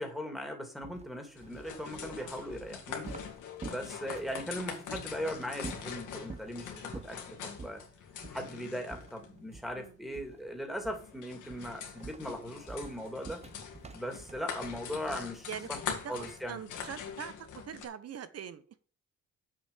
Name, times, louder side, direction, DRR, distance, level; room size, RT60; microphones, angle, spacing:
voice 1, 0.0-3.1 3.6-7.8 8.3-13.4 13.9-15.8 16.1-16.6, equal, ahead, 2 dB, 2.9 m, -39 dB
sound 1, 0.8-4.5 4.9-5.1 5.6-6.5 6.9-7.2 7.6-7.8 8.2-8.5 8.9-9.8 10.1-10.5 10.8-11.2 11.5-15.4, right 4 dB, 20° right, 0.8 m, -47 dB
sound 2, 1.4-17.9, left 7 dB, 80° left, 2.4 m, -43 dB
voice 2, 16.0-18.7, right 8 dB, 55° right, 13 dB, 1.1 m, -43 dB
7.5 x 5.4 x 7.4 m, 0.39 s
cardioid pair, 90°, 30 cm